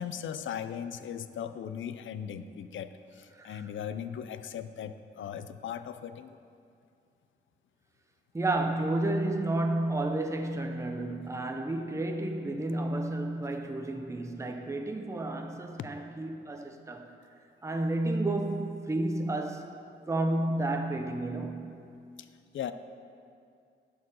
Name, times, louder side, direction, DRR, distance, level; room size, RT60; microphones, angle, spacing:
voice 1, 0.0-6.4 13.9-14.0 15.8-15.9 22.2-22.3 22.5-22.7, left 8 dB, 80° left, 0.4 m, -38 dB
voice 2, 3.3-3.7 8.3-17.2 17.6-19.7 20.1-21.7, right 2 dB, 15° right, 0.6 m, -31 dB
10.5 x 4.6 x 6.3 m
cardioid pair, 95°, 19 cm